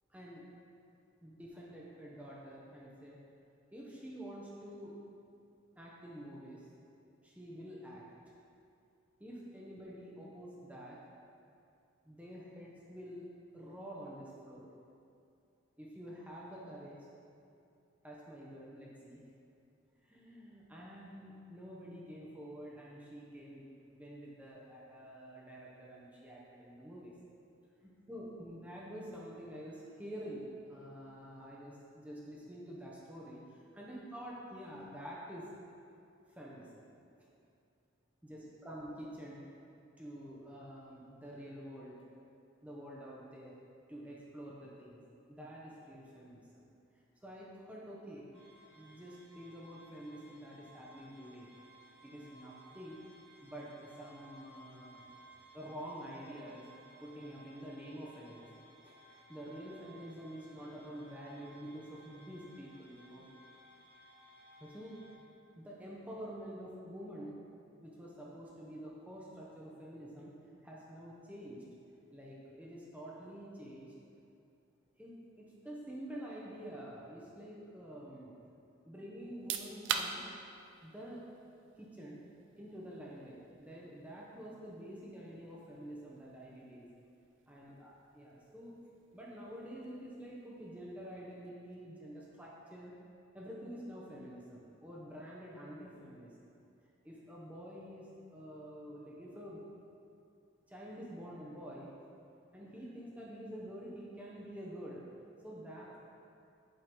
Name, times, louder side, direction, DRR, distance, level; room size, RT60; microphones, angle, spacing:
voice 1, 0.1-0.4 1.2-3.2 3.7-5.0 5.8-6.7 7.2-8.0 9.2-11.0 12.0-14.7 15.8-17.1 18.0-19.2 20.0-27.1 27.8-35.5 36.3-36.9 38.2-39.4 40.0-42.0 42.6-43.6 43.9-45.0 45.3-46.7 47.2-48.3 48.8-51.5 52.0-53.0 53.4-55.1 55.5-56.7 57.0-58.5 58.8-63.3 64.6-65.0 65.5-67.4 67.8-70.3 70.6-71.6 72.1-73.9 75.0-78.4 78.8-80.2 80.8-81.2 81.8-82.2 82.6-86.9 87.5-88.7 89.1-92.9 93.3-96.3 97.0-99.6 100.7-101.9 102.5-105.0 105.4-106.0, equal, 5° right, -5 dB, 0.7 m, -48 dB
sound 1, 48.3-65.1, right 1 dB, 90° right, 1.6 m, -60 dB
sound 2, 79.3-91.9, right 7 dB, 60° right, 0.4 m, -47 dB
7.7 x 3.8 x 4.5 m, 2.6 s
head